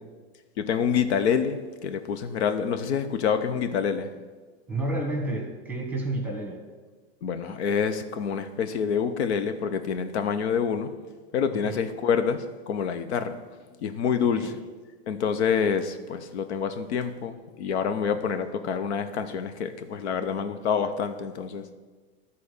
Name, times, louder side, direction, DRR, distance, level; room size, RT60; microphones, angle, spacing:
voice 1, 0.6-4.1 7.2-10.9 11.3-13.3 13.8-14.5 15.1-21.6, left 7 dB, 85° left, 9 dB, 0.9 m, -27 dB
voice 2, 4.7-6.6 11.5-11.8 14.2-14.5, right 2 dB, 5° right, 2 dB, 1.2 m, -31 dB
12.0 x 4.2 x 6.5 m, 1.3 s
supercardioid pair, 155°, 33 cm